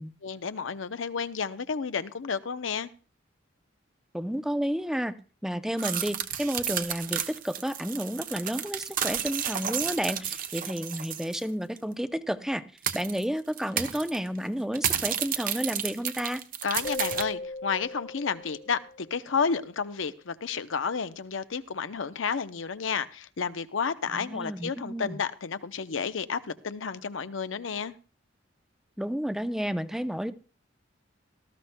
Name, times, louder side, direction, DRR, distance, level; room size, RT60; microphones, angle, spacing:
voice 1, 0.2-2.9 16.6-27.9, left 5 dB, 85° left, 12 dB, 0.7 m, -31 dB
voice 2, 4.1-5.2 5.4-12.6 12.9-16.4 24.1-25.2 29.0-30.3, equal, 5° right, 10 dB, 0.5 m, -31 dB
sound 1, 5.8-11.4 11.8-11.9 12.8-13.2 13.6-14.2 14.7-17.2, right 9 dB, 45° right, 0.9 m, -31 dB
sound 2, 16.8-19.5, left 2 dB, 50° left, 1.2 m, -39 dB
18.5 x 13.5 x 2.2 m, 0.36 s
head